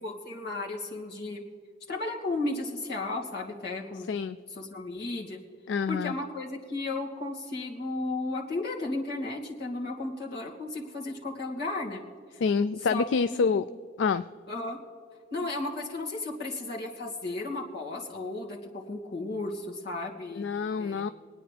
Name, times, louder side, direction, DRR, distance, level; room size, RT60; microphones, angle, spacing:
voice 1, 0.0-1.4 1.9-4.1 4.5-5.4 5.9-12.0 12.9-13.0 13.3-13.5 14.5-14.8 15.3-20.5 20.8-21.0, left 2 dB, 60° left, -4 dB, 2.4 m, -34 dB
voice 2, 5.7-6.1 12.4-13.7 14.0-14.2 20.4-21.1, left 5 dB, 80° left, 12 dB, 0.4 m, -27 dB
24.5 x 9.5 x 3.4 m, 2.1 s
head